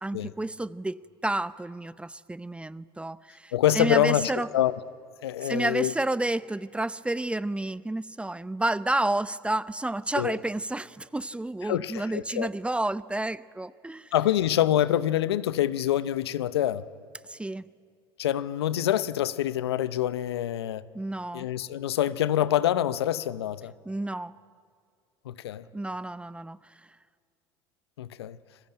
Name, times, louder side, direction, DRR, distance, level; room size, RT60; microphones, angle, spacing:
voice 1, 0.0-4.5 5.4-14.1 17.3-17.6 20.9-21.4 23.9-24.3 25.7-26.6, right 2 dB, 10° right, 0.6 m, -30 dB
voice 2, 3.5-4.7 5.2-5.9 10.2-10.4 11.7-12.5 14.1-16.8 18.2-20.8 21.3-23.7 25.3-25.6 28.0-28.4, left 12 dB, 80° left, 0.8 m, -26 dB
29.0 x 21.0 x 9.0 m
hypercardioid pair, 75°, 13 cm